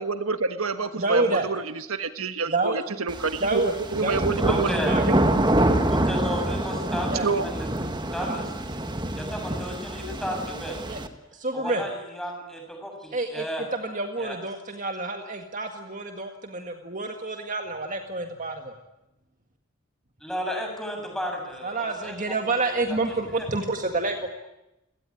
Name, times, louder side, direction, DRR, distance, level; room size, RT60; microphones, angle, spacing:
voice 1, 0.0-4.7 5.1-5.2 7.2-7.5, right 4 dB, 90° right, 9 dB, 1.5 m, -27 dB
voice 2, 1.0-1.5 2.5-2.9 3.4-3.7 4.0-4.3 4.9-5.0 7.1-7.3 8.2-8.4 10.9-11.0 11.3-11.8 13.1-13.4 13.7-18.7 21.6-24.3, right 2 dB, 40° right, 5 dB, 1.9 m, -28 dB
sound 1, 3.1-11.1, right 1 dB, 20° right, 1.7 m, -26 dB
voice 3, 4.5-4.9 5.9-7.7 8.1-8.5 9.1-10.8 11.5-13.6 14.2-14.4 20.2-22.4 22.7-22.8 23.4-23.5, equal, ahead, 2 dB, 7.3 m, -33 dB
30.0 x 17.5 x 10.0 m, 0.93 s
head